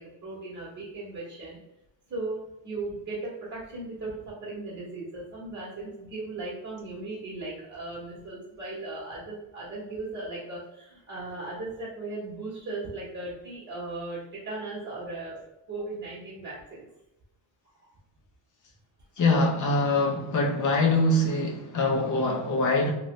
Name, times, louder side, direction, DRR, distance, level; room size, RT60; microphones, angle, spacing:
voice 1, 0.0-1.6 2.1-15.4 15.7-16.9, right 2 dB, 35° right, 0.9 m, -37 dB
voice 2, 19.2-22.9, left 2 dB, 40° left, 0.6 m, -24 dB
2.9 x 2.5 x 3.1 m
wide cardioid pair, 165°, 48 cm